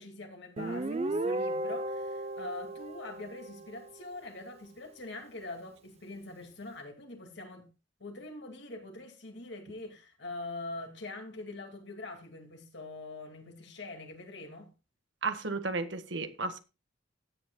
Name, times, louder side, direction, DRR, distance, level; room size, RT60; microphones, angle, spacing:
voice 1, 0.0-7.7 8.0-14.7, left 2 dB, 65° left, 2.4 m, -44 dB
Guitar, 0.6-4.0, right 2 dB, 35° right, 0.6 m, -35 dB
voice 2, 15.2-16.6, right 3 dB, 70° right, 1.6 m, -33 dB
16.0 x 9.6 x 2.3 m
head